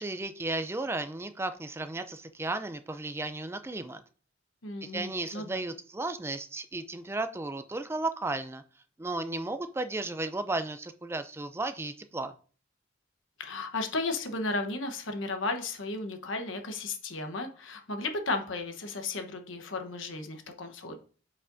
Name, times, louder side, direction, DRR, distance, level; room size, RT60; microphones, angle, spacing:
voice 1, 0.0-4.0 4.8-8.6 9.0-12.3, right 2 dB, 15° right, 10 dB, 0.4 m, -34 dB
voice 2, 4.6-5.6 13.4-21.0, left 3 dB, 80° left, 6 dB, 1.1 m, -34 dB
8.3 x 5.5 x 2.6 m, 0.41 s
head